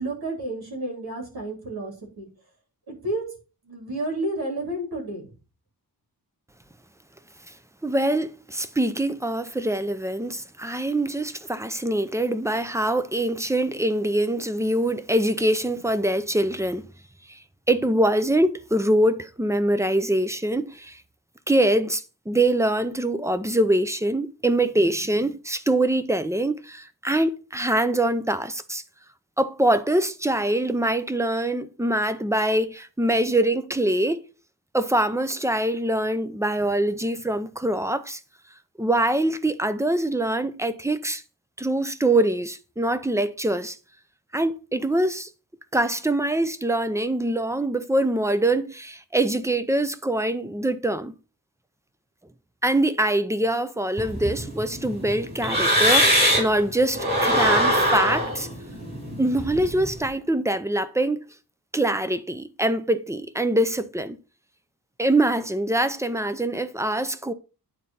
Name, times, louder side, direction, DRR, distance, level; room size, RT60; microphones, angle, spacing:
voice 1, 0.0-2.3 2.9-3.3 3.6-5.3, right 1 dB, 75° right, 3.7 m, -31 dB
voice 2, 7.8-16.8 17.3-17.4 17.7-21.0 21.5-28.8 29.4-34.2 34.7-38.2 38.8-41.2 41.6-43.8 44.3-45.3 45.7-51.1 52.6-58.5 59.2-61.2 61.7-64.2 65.0-67.3, right 1 dB, 10° right, 0.6 m, -24 dB
sound 1, 54.0-56.6 56.9-60.0, equal, 25° right, 5.0 m, -22 dB
9.5 x 4.1 x 5.6 m
wide cardioid pair, 115°, 37 cm